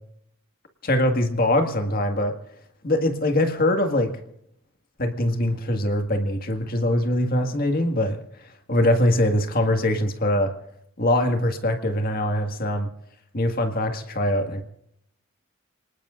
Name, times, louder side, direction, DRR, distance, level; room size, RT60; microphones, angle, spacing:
voice 1, 0.8-2.4 2.8-4.2 5.0-8.2 8.7-10.5 11.0-12.9 13.3-14.6, left 1 dB, 45° left, 6 dB, 1.9 m, -22 dB
28.5 x 19.5 x 2.5 m, 0.76 s
head